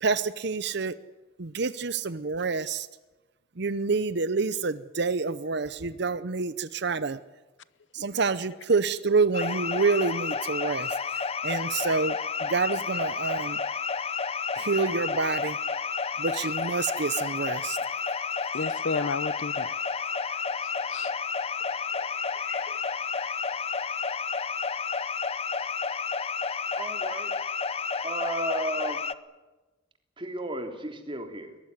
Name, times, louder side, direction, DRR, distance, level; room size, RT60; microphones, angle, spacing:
voice 1, 0.0-0.9 1.4-2.9 3.6-7.2 7.9-13.6 14.5-15.6 16.2-17.8, right 4 dB, 65° right, 0.8 m, -28 dB
sound 1, 9.3-29.1, left 5 dB, 35° left, 0.8 m, -31 dB
voice 2, 18.5-19.7 20.1-20.2 20.9-21.1 22.0-22.1 22.4-22.8 23.2-23.3, left 4 dB, 75° left, 0.8 m, -33 dB
voice 3, 26.8-27.3 28.0-29.0 30.2-31.5, right 2 dB, 30° right, 3.3 m, -33 dB
22.5 x 19.5 x 9.7 m
head